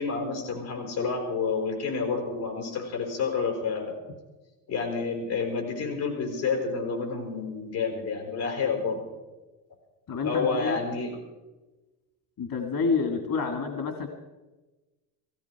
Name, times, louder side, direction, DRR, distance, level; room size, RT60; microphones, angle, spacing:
voice 1, 0.0-4.0 4.7-9.0 10.2-11.2, left 4 dB, 75° left, 2 dB, 5.2 m, -29 dB
voice 2, 10.1-10.8 12.4-14.1, left 5 dB, 45° left, 5 dB, 2.2 m, -28 dB
16.5 x 16.5 x 4.7 m, 1.1 s
supercardioid pair, 80°, 46 cm